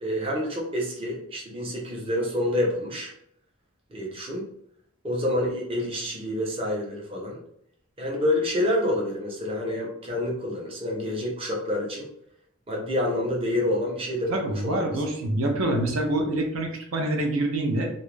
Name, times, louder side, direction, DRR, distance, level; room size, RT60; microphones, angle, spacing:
voice 1, 0.0-3.1 3.9-4.4 5.0-7.4 8.0-12.1 12.7-15.0, left 1 dB, 25° right, -2 dB, 0.6 m, -28 dB
voice 2, 14.3-17.9, right 1 dB, 75° right, 2 dB, 0.5 m, -26 dB
2.3 x 2.0 x 3.1 m, 0.72 s
head